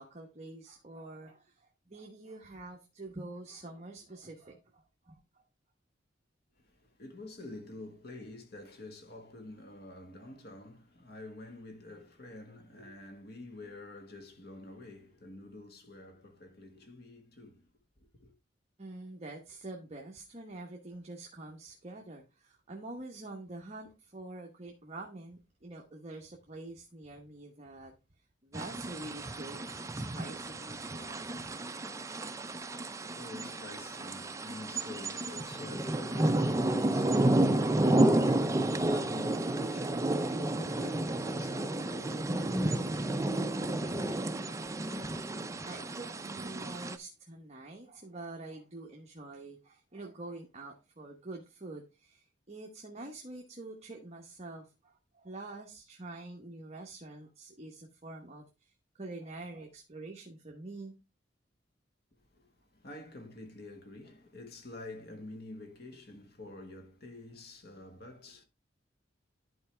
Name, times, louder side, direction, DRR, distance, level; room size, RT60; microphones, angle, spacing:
voice 1, 0.0-5.4 18.8-27.9 28.4-31.4 44.9-60.9, right 2 dB, 35° right, 1.1 m, -46 dB
voice 2, 6.5-17.7 18.1-18.3 32.4-44.4 44.9-45.2 62.3-68.4, left 2 dB, 55° left, 1.4 m, -48 dB
sound 1, 28.5-47.0, right 1 dB, 15° right, 0.4 m, -31 dB
11.5 x 4.6 x 3.3 m
head